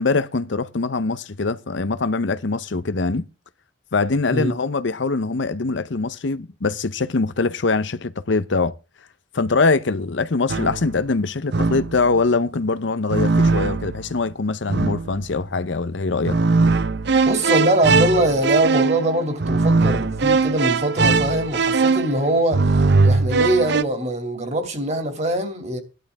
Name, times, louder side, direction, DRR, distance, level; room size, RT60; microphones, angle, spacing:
voice 1, 0.0-3.2 3.9-8.7 9.3-16.4, left 3 dB, 70° left, 0.7 m, -23 dB
sound 1, 10.5-11.0 11.5-12.1 13.1-14.1 14.7-15.2 16.3-23.8, right 4 dB, 60° right, 0.6 m, -20 dB
voice 2, 17.2-25.8, right 1 dB, 35° right, 2.6 m, -22 dB
16.0 x 11.5 x 3.5 m
head